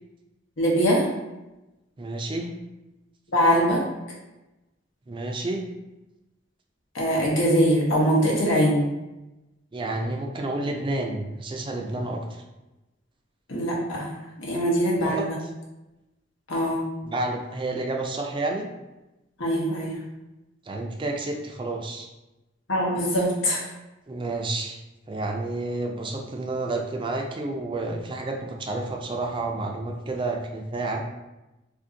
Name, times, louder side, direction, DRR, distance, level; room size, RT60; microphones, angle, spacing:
voice 1, 0.6-1.0 3.3-3.8 6.9-8.8 13.5-15.4 16.5-16.8 19.4-20.0 22.7-23.6, equal, 90° left, -3 dB, 0.9 m, -22 dB
voice 2, 2.0-2.5 5.1-5.6 9.7-12.2 15.0-15.5 17.0-18.7 20.7-22.1 24.1-24.8 25.1-31.0, right 2 dB, 25° right, 2 dB, 0.4 m, -30 dB
2.6 x 2.5 x 3.7 m, 1.0 s
head